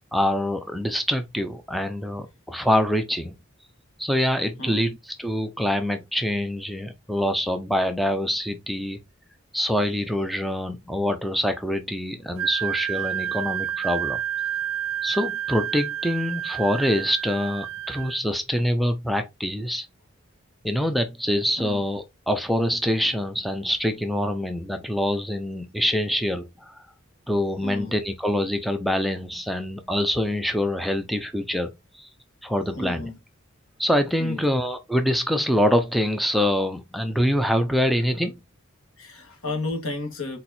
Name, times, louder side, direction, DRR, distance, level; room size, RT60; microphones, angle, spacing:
voice 1, 0.1-3.4 4.0-9.0 9.5-14.2 15.0-19.9 20.6-26.9 27.3-32.1 32.4-33.1 33.8-38.4, equal, ahead, 0.5 m, -25 dB
Wind instrument woodwind instrument, 12.4-18.2, right 10 dB, 80° right, 0.4 m, -29 dB
voice 2, 27.6-28.0 32.8-33.2 34.2-34.5 39.0-40.4, left 2 dB, 85° left, 1.5 m, -32 dB
4.4 x 4.2 x 2.6 m
head